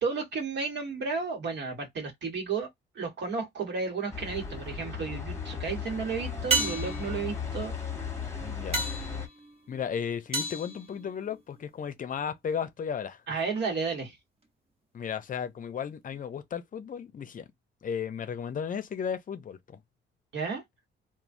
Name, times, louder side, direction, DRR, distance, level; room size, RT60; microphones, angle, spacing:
voice 1, 0.0-2.7 2.9-7.7 13.3-14.2 20.3-20.6, right 5 dB, 65° right, 1.2 m, -32 dB
sound 1, 4.1-9.3, left 6 dB, 15° left, 1.0 m, -36 dB
sound 2, 4.2-4.8 6.5-11.7 16.1-16.2, right 3 dB, 30° right, 0.8 m, -34 dB
voice 2, 8.4-8.9 9.7-13.4 14.9-17.5 17.8-19.8, left 7 dB, 45° left, 0.6 m, -35 dB
3.0 x 2.1 x 2.6 m
cardioid pair, 90°, 20 cm